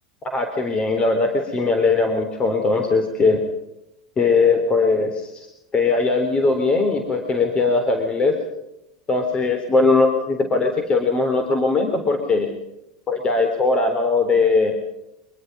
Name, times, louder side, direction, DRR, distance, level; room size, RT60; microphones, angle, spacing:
voice 1, 0.2-3.4 4.2-5.5 5.7-8.4 9.1-12.5 13.1-14.7, left 3 dB, 30° left, 6 dB, 3.7 m, -20 dB
25.0 x 20.5 x 5.3 m, 0.88 s
hypercardioid pair, 90°, 3 cm